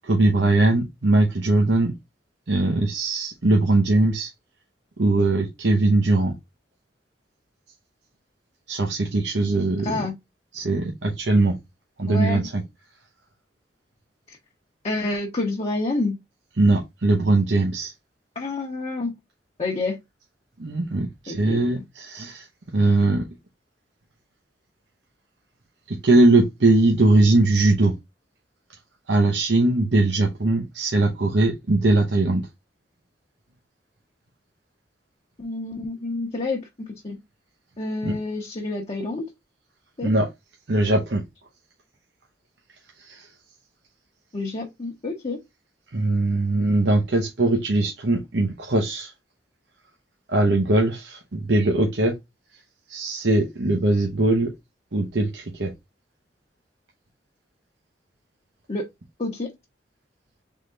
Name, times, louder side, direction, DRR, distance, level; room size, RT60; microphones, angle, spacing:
voice 1, 0.0-1.9 2.5-4.3 5.0-6.3 8.7-10.0 10.5-11.6 12.0-12.6 16.6-17.9 20.6-22.5 22.7-23.2 25.9-27.9 29.1-32.4 38.0-38.2 40.0-40.3 40.7-41.2 43.1-43.3 45.9-49.1 50.3-52.1 52.9-54.5 54.9-55.7, right 2 dB, 70° right, 0.9 m, -20 dB
voice 2, 9.8-10.1 12.1-12.5 14.3-14.4 14.8-16.2 18.4-19.1 19.6-20.0 21.3-21.6 35.4-37.2 37.8-39.3 40.0-40.1 44.3-45.4 58.7-58.9 59.2-59.5, left 2 dB, 35° left, 0.8 m, -28 dB
3.7 x 3.3 x 3.8 m
head